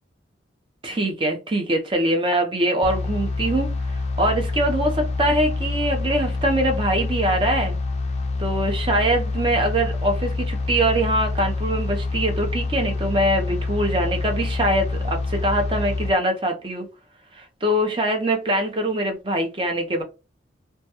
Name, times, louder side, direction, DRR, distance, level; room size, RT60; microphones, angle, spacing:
voice 1, 0.8-3.8 4.2-7.8 8.4-16.9 17.4-20.0, right 1 dB, 30° right, 4 dB, 0.5 m, -23 dB
sound 1, 2.8-16.1, left 3 dB, 35° left, 0.3 m, -26 dB
2.2 x 2.2 x 2.8 m, 0.28 s
head